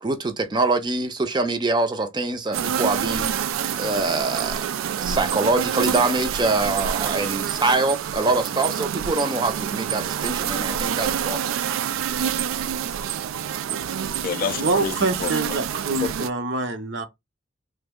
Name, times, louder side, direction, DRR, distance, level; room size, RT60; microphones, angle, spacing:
voice 1, 0.0-3.3 3.7-4.6 5.0-11.5, right 3 dB, 20° right, 0.5 m, -24 dB
sound 1, 2.5-16.3, right 9 dB, 80° right, 0.3 m, -27 dB
voice 2, 13.7-14.0 14.6-17.0, right 3 dB, 60° right, 0.7 m, -26 dB
voice 3, 14.2-15.5 16.0-16.1, left 6 dB, 45° left, 0.3 m, -29 dB
3.2 x 2.1 x 3.5 m
head